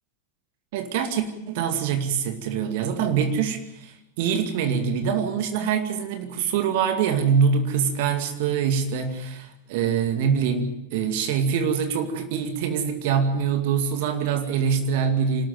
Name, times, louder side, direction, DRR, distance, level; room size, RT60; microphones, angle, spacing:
voice 1, 0.7-15.5, right 7 dB, 50° right, 6 dB, 2.3 m, -24 dB
25.5 x 13.0 x 9.1 m, 0.86 s
figure-of-eight pair, 90°, 0 cm